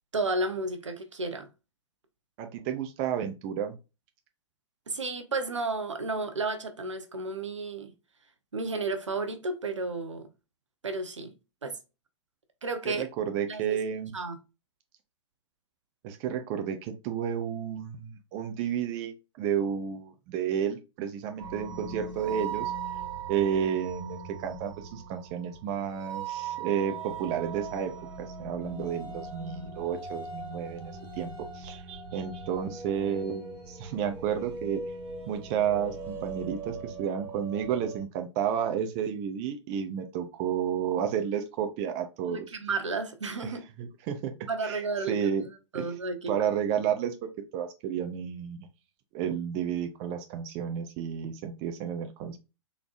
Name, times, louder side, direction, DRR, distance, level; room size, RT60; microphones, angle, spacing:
voice 1, 0.1-1.5 4.9-7.9 8.5-10.3 10.8-11.3 11.6-11.7 12.6-13.0 13.5-13.8 14.1-14.4 42.2-43.6 44.5-45.3 45.7-46.3, right 3 dB, 75° right, 0.8 m, -32 dB
voice 2, 2.4-3.8 12.8-14.1 16.0-22.7 23.3-27.9 28.2-34.8 35.3-42.5 43.4-43.5 43.8-44.3 44.6-44.8 45.1-45.4 45.7-45.9 46.3-48.7 49.1-52.4, right 8 dB, 30° right, 0.5 m, -31 dB
sound 1, 21.4-38.0, right 5 dB, 45° right, 1.5 m, -39 dB
3.9 x 3.3 x 2.4 m
figure-of-eight pair, 115°, 16 cm